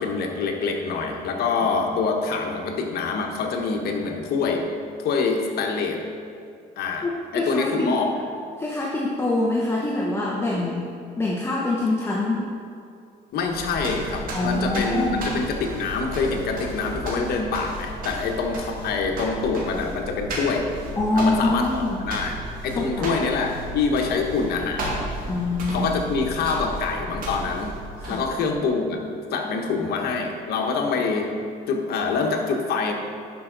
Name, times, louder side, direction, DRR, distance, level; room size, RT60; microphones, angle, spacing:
voice 1, 0.0-4.7 5.0-6.0 6.8-8.1 13.3-20.7 21.2-25.0 25.7-27.8 28.1-29.0 29.3-31.3 31.7-32.9, left 4 dB, 70° left, 2 dB, 1.2 m, -25 dB
voice 2, 7.0-8.0 8.6-10.9 11.2-12.5 14.3-15.3 21.0-22.0 22.7-23.2 25.3-25.9 28.0-28.2, left 2 dB, 15° left, -4 dB, 1.0 m, -25 dB
sound 1, 13.3-28.5, right 1 dB, 55° right, 2.2 m, -34 dB
10.5 x 5.6 x 3.9 m, 2.4 s
cardioid pair, 110°, 17 cm